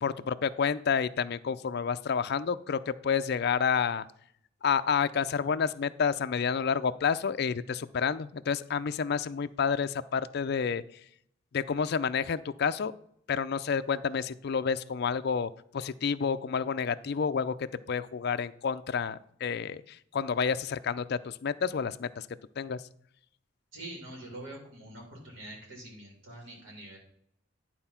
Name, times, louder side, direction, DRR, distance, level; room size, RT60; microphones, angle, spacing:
voice 1, 0.0-4.1 4.6-10.8 11.5-12.9 13.3-22.3 22.6-22.8, left 6 dB, 55° left, 12 dB, 0.4 m, -29 dB
voice 2, 23.7-27.0, right 1 dB, 85° right, -2 dB, 3.3 m, -45 dB
11.0 x 4.4 x 5.7 m, 0.69 s
head